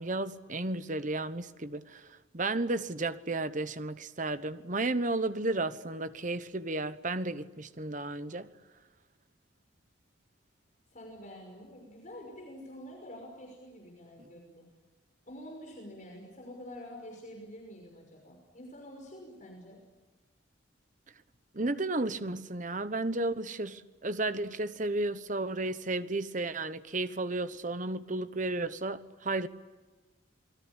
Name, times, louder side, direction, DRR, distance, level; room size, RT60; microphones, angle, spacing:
voice 1, 0.0-8.5 21.5-29.5, right 2 dB, 40° right, 1.1 m, -33 dB
voice 2, 10.9-14.7 15.3-19.8, equal, 40° left, 5.8 m, -47 dB
28.0 x 21.0 x 10.0 m
head